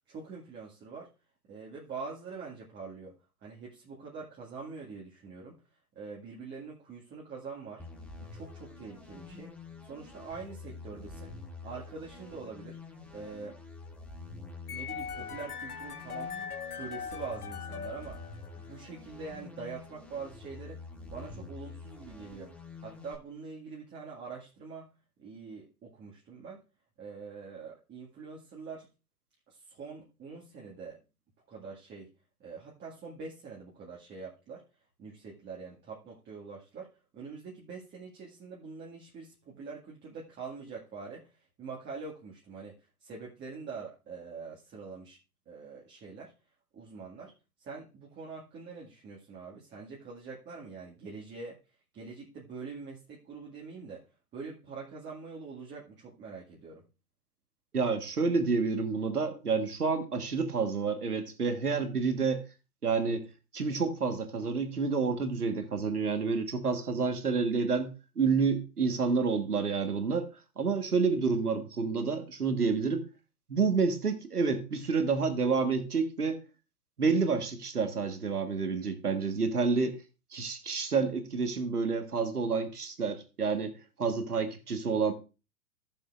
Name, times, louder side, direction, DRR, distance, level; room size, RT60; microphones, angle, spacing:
voice 1, 0.1-1.1 1.5-5.6 5.9-7.8 8.2-9.5 9.8-11.3 11.6-12.8 13.1-13.6 14.7-16.4 16.7-18.2 18.5-20.8 21.1-24.9 25.2-26.6 27.0-28.9 29.5-31.0 31.5-32.1 32.4-34.6 35.0-45.2 45.5-46.3 46.7-47.3 47.6-51.6 51.9-54.1 54.3-56.8, right 4 dB, 25° right, -4 dB, 2.0 m, -44 dB
sound 1, 7.8-23.2, left 3 dB, 5° left, 1.6 m, -47 dB
sound 2, 14.7-18.8, left 6 dB, 80° left, 0.9 m, -40 dB
voice 2, 57.7-62.4 62.8-63.2 63.5-67.9 68.2-70.3 70.6-73.0 73.5-76.4 77.0-80.0 80.3-83.7 84.0-85.1, right 4 dB, 90° right, 8 dB, 1.5 m, -29 dB
15.5 x 6.9 x 2.5 m, 0.30 s
figure-of-eight pair, 105°, 44 cm